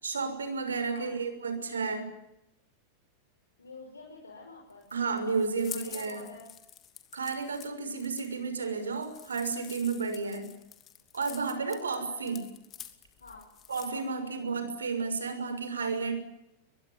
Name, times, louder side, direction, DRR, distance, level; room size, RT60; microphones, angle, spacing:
voice 1, 0.0-2.1 4.9-6.3 7.1-10.5 11.1-12.4 13.7-16.1, right 4 dB, 70° right, 9 dB, 6.3 m, -32 dB
voice 2, 3.6-4.9 5.3-6.5 11.6-12.4 13.2-13.5 13.9-14.5, left 3 dB, 75° left, 0 dB, 5.5 m, -48 dB
sound 1, 4.7-14.1, left 10 dB, 30° left, 2.9 m, -48 dB
23.5 x 23.0 x 9.8 m, 0.85 s
figure-of-eight pair, 90°, 0 cm